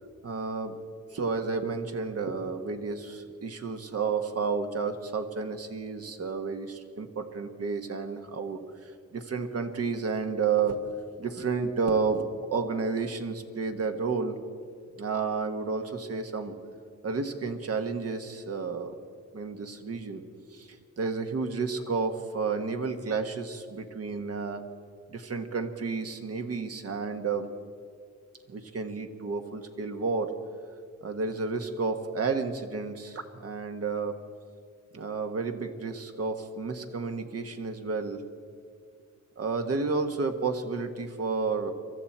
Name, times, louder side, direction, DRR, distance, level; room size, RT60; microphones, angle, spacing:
voice 1, 0.2-0.7 1.1-10.8 11.2-14.4 15.0-16.5 17.0-19.0 19.3-20.2 20.5-24.6 25.1-27.5 28.5-30.3 31.0-34.2 34.9-38.2 39.4-41.7, right 4 dB, 55° right, 6 dB, 1.4 m, -31 dB
23.0 x 13.5 x 4.4 m, 2.1 s
cardioid pair, 100°, 29 cm